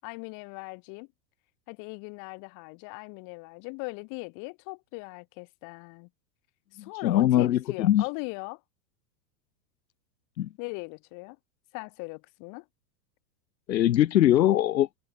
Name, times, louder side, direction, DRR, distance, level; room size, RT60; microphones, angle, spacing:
voice 1, 0.0-1.1 1.7-6.1 6.7-8.6 10.6-11.4 11.7-12.6, left 33 dB, 40° left, 8.0 m, -39 dB
voice 2, 6.8-8.0 10.4-10.5 13.7-14.9, left 12 dB, 90° left, 3.0 m, -22 dB
supercardioid pair, 160°, 50 cm